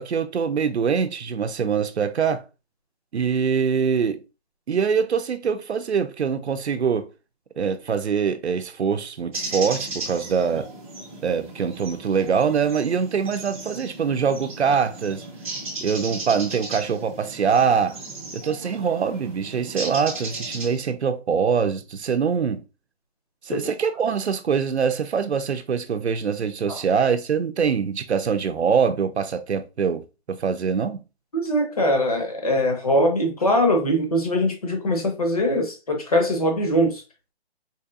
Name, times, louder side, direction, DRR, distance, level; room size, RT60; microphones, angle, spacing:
voice 1, 0.0-2.4 3.1-4.2 4.7-7.1 7.6-10.7 11.2-15.2 15.8-18.0 18.3-22.6 23.4-31.0, right 6 dB, 85° right, 0.8 m, -23 dB
sound 1, 9.3-20.8, right 2 dB, 15° right, 0.9 m, -36 dB
voice 2, 31.3-37.0, equal, 35° left, 0.8 m, -22 dB
4.4 x 2.8 x 2.4 m
hypercardioid pair, 180°, 32 cm